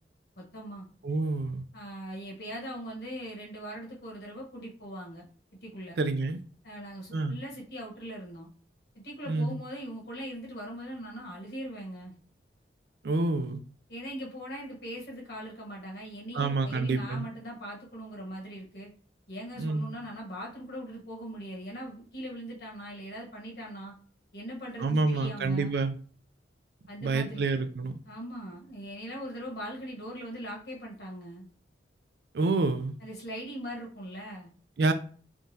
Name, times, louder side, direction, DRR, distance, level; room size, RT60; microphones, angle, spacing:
voice 1, 0.4-0.9 1.7-5.3 5.6-6.0 6.6-8.5 8.9-12.1 13.9-18.9 19.3-23.9 24.3-25.7 26.9-27.4 28.1-31.4 33.0-34.5, equal, 65° left, 1.1 m, -40 dB
voice 2, 1.0-1.6 6.0-6.4 7.1-7.4 9.3-9.6 13.0-13.6 16.3-17.3 19.6-19.9 24.8-26.0 27.0-28.0 32.3-33.0 34.8-34.9, right 3 dB, 65° right, 0.4 m, -28 dB
3.6 x 2.4 x 2.7 m
head